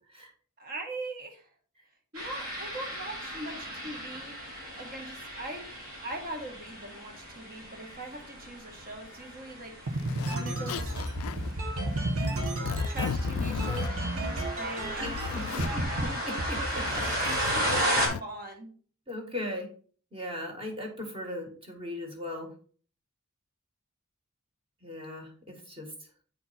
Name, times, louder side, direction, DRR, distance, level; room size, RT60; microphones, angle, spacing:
voice 1, 0.6-1.5 2.1-4.4 4.7-5.7 6.0-10.9 12.9-16.2 16.9-18.7, right 2 dB, 45° right, 3 dB, 1.7 m, -41 dB
sound 1, 2.1-18.1, equal, 90° right, 3.6 m, -35 dB
Zipper (clothing), 9.1-9.2 10.0-10.4 10.7-11.5 12.2-13.9 14.6-15.7 16.7-18.2, left 7 dB, 75° left, 0.3 m, -36 dB
sound 2, 9.9-15.3 15.6-16.0 16.4-17.8, right 1 dB, 70° right, 1.5 m, -32 dB
voice 2, 15.3-17.0 19.1-19.7 20.1-22.5 24.8-25.9, left 1 dB, 25° right, 2 dB, 1.7 m, -38 dB
8.7 x 4.5 x 4.2 m, 0.43 s
head